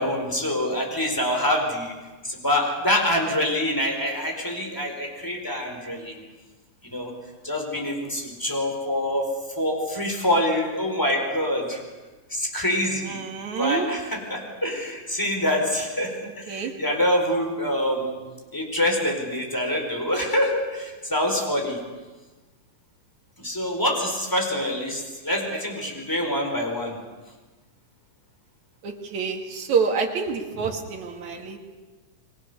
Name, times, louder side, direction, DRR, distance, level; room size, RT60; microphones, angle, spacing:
voice 1, 0.0-1.9 2.2-6.2 6.8-7.1 7.4-9.3 9.6-11.8 12.3-13.2 13.6-18.2 18.5-21.8 23.4-27.0, left 1 dB, 5° left, 2 dB, 4.4 m, -25 dB
voice 2, 13.1-13.9 16.5-16.7 28.8-31.6, right 5 dB, 65° right, 3 dB, 3.4 m, -27 dB
29.5 x 22.5 x 6.9 m, 1.2 s
omnidirectional pair, 3.7 m